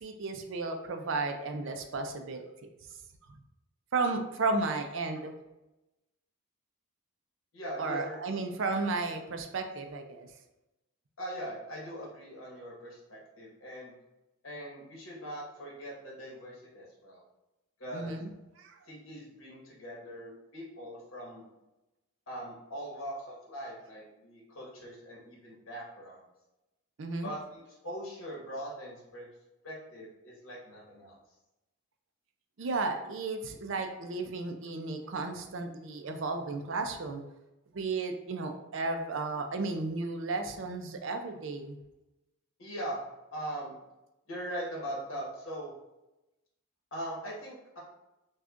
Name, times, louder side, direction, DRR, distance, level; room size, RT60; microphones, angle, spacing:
voice 1, 0.0-2.5 3.3-3.4 3.9-5.3 7.8-10.3 17.9-18.3 18.6-18.8 27.0-27.3 32.6-37.2 37.7-41.8, right 3 dB, 55° right, 5 dB, 0.5 m, -33 dB
voice 2, 7.5-8.4 11.2-13.9 14.4-17.2 17.8-18.2 18.9-21.4 22.3-26.2 27.2-29.3 29.6-31.1 42.6-43.0 43.3-43.7 44.3-45.7 46.9-47.8, equal, 60° left, -4 dB, 1.4 m, -41 dB
6.1 x 2.3 x 2.5 m, 0.97 s
head